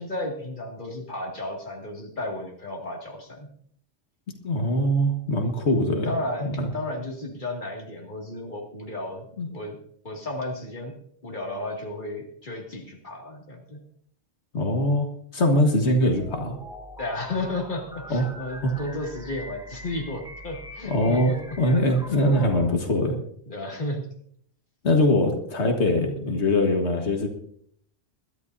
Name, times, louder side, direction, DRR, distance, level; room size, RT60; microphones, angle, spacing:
voice 1, 0.0-3.5 6.0-9.8 10.0-10.9 11.2-13.8 17.0-21.4 23.5-24.1, left 2 dB, 45° left, 0 dB, 2.6 m, -33 dB
voice 2, 4.4-6.1 6.4-6.7 9.4-9.5 14.5-16.6 18.1-18.3 18.6-18.7 20.8-23.2 24.8-27.3, left 1 dB, 90° left, 2 dB, 1.9 m, -22 dB
sound 1, 16.0-22.8, equal, 5° right, 1.6 m, -43 dB
22.0 x 12.5 x 2.7 m, 0.65 s
omnidirectional pair, 1.1 m